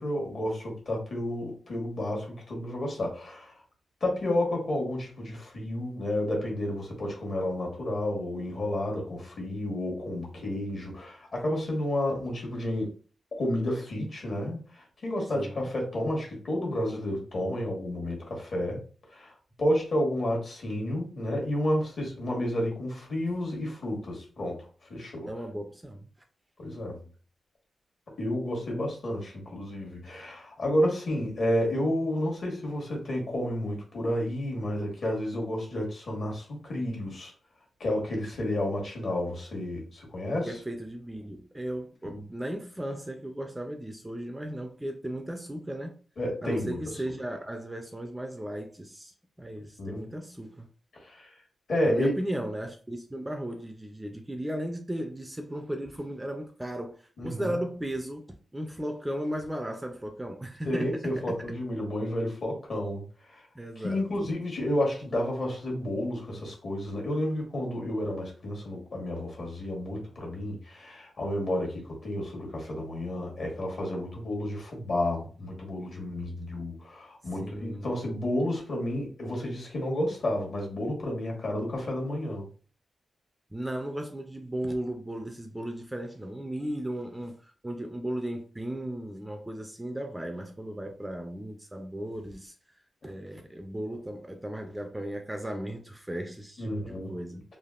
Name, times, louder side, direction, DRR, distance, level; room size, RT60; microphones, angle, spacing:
voice 1, 0.0-3.5 4.0-12.9 13.4-18.8 19.1-25.3 26.6-27.0 28.2-37.3 37.8-40.5 42.1-42.2 46.2-47.0 49.8-50.0 50.9-51.3 51.7-52.1 57.2-57.6 60.7-63.5 63.8-82.5 96.6-97.1, left 1 dB, 55° left, 1.3 m, -31 dB
voice 2, 15.3-15.7 25.3-26.1 40.4-46.0 46.4-50.7 51.9-61.3 63.6-64.1 77.4-78.0 83.5-92.5 93.0-97.4, right 1 dB, 10° right, 0.4 m, -36 dB
3.3 x 2.4 x 2.4 m
wide cardioid pair, 130°, 0 cm